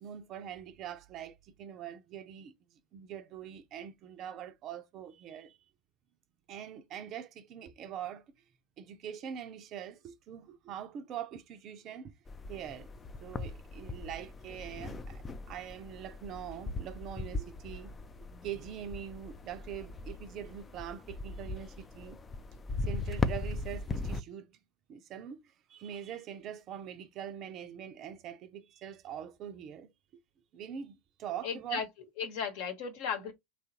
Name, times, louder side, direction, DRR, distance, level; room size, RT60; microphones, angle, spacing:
voice 1, 0.0-2.5 2.9-5.6 6.5-8.2 8.8-12.1 12.5-12.9 13.2-17.9 18.4-22.2 22.8-24.5 24.9-29.9 30.5-31.8 33.2-33.3, right 9 dB, 40° right, 0.5 m, -43 dB
sound 1, 12.3-24.2, left 3 dB, 20° left, 0.4 m, -39 dB
voice 2, 31.4-31.9 32.2-33.3, left 6 dB, 55° left, 1.1 m, -35 dB
3.0 x 2.4 x 2.8 m
figure-of-eight pair, 80°, 0 cm